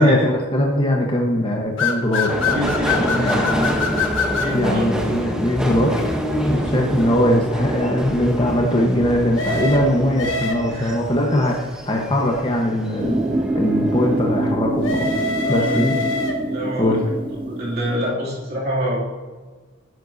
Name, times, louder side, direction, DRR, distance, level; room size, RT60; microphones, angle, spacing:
voice 1, 0.0-2.4 3.0-3.7 4.5-6.0 6.4-13.2 13.5-15.1 15.5-16.0 16.8-17.0, left 1 dB, 25° left, 0 dB, 1.2 m, -20 dB
sound 1, 1.8-4.6 9.4-10.9 14.8-16.7, left 4 dB, 70° left, 1.3 m, -24 dB
Subway metro underground, 2.3-13.0 13.4-14.1 14.4-14.5, equal, 5° right, 0.9 m, -26 dB
voice 2, 2.4-3.5 4.3-4.9 6.5-6.7 10.7-11.0 15.4-15.8 16.5-17.0 17.4-19.0, equal, 50° right, -6 dB, 2.7 m, -26 dB
sound 2, 13.0-18.0, right 1 dB, 25° right, 0.7 m, -25 dB
11.5 x 11.0 x 2.7 m, 1.3 s
head